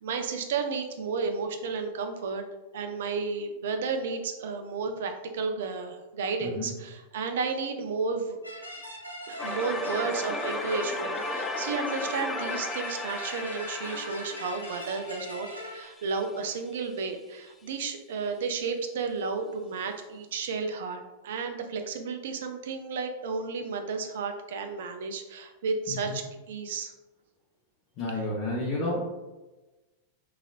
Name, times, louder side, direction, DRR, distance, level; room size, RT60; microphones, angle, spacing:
voice 1, 0.0-2.4 2.7-8.4 9.3-26.9, right 4 dB, 60° right, 5 dB, 0.4 m, -32 dB
sound 1, 8.4-15.8, equal, 90° left, 0.6 m, -41 dB
sound 2, 9.4-16.3, left 2 dB, 15° left, 0.3 m, -35 dB
voice 2, 28.0-29.0, left 2 dB, 40° left, -5 dB, 0.8 m, -31 dB
3.8 x 2.9 x 2.5 m, 1.1 s
figure-of-eight pair, 90°, 0 cm